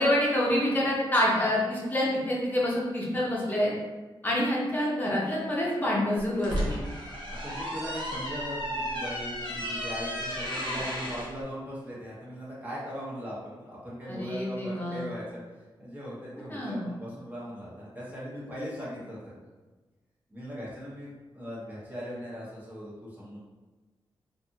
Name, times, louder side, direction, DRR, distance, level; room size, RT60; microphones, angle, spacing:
voice 1, 0.0-3.7 4.2-6.8 14.1-15.1 16.5-16.9, left 1 dB, 20° left, -5 dB, 0.8 m, -27 dB
sound 1, 6.2-11.3, equal, 60° right, 0.8 m, -33 dB
voice 2, 7.3-15.4 15.8-19.3 20.3-23.4, equal, 20° right, -7 dB, 1.0 m, -39 dB
2.5 x 2.5 x 2.7 m, 1.2 s
wide cardioid pair, 115°, 9 cm